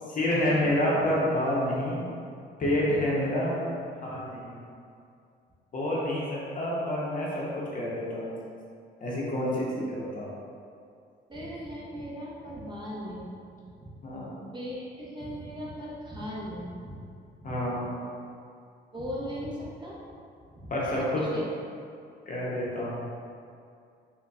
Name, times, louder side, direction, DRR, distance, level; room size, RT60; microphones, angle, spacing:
voice 1, 0.1-2.1 2.6-4.6 5.7-8.3 9.0-10.3 14.0-14.3 17.4-17.9 20.7-21.2 22.3-22.9, left 1 dB, 40° left, -6 dB, 0.8 m, -28 dB
voice 2, 11.3-13.4 13.8-13.9 14.5-17.0 17.4-17.6 18.9-20.0 20.6-21.4, equal, 25° right, -6 dB, 0.7 m, -38 dB
4.0 x 2.2 x 2.3 m, 2.4 s
cardioid pair, 90°, 20 cm